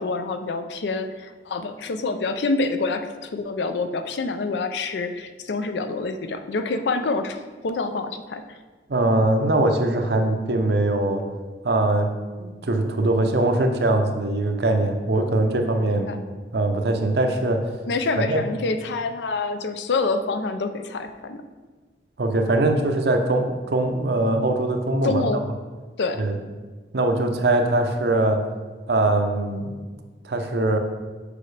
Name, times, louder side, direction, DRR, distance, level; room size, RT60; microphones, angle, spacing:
voice 1, 0.0-8.4 16.1-16.2 17.9-21.4 25.0-25.4 26.0-26.2, left 3 dB, 70° left, 8 dB, 0.4 m, -27 dB
voice 2, 8.9-11.2 11.6-16.1 16.5-17.7 18.2-18.4 22.2-25.2 26.2-26.4 26.9-28.5 28.9-29.8 30.2-30.8, right 2 dB, 60° right, 5 dB, 0.6 m, -22 dB
6.8 x 5.0 x 3.3 m, 1.4 s
head